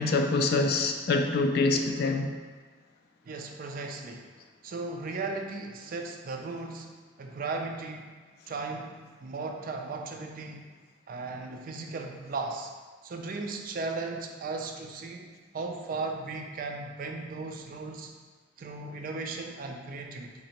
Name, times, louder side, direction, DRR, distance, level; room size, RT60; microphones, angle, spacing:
voice 1, 0.0-2.3, left 3 dB, 60° left, 5 dB, 0.3 m, -25 dB
voice 2, 3.2-4.3 4.6-6.9 7.2-8.1 8.5-10.7 11.1-12.7 13.0-18.1 18.6-20.3, right 3 dB, 50° right, 3 dB, 0.4 m, -36 dB
4.1 x 2.8 x 2.9 m, 1.4 s
head